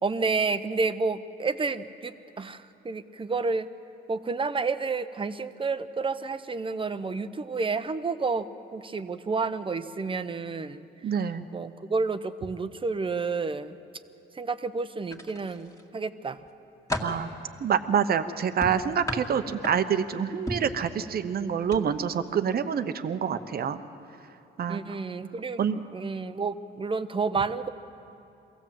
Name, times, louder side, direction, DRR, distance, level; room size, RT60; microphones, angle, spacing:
voice 1, 0.0-3.7 4.1-10.8 11.5-13.8 14.3-16.4 24.7-25.6 25.9-27.7, right 4 dB, 25° right, 11 dB, 0.8 m, -30 dB
voice 2, 11.0-11.5 17.0-17.3 17.6-23.8 24.6-25.0 25.6-25.8, right 7 dB, 50° right, 10 dB, 0.9 m, -27 dB
sound 1, 15.1-15.9 16.4-17.2 18.6-20.0 20.5-20.8 21.6-21.8 22.2-22.4, left 1 dB, 15° left, 2.0 m, -34 dB
23.0 x 16.5 x 7.6 m, 2.7 s
cardioid pair, 90°, 20 cm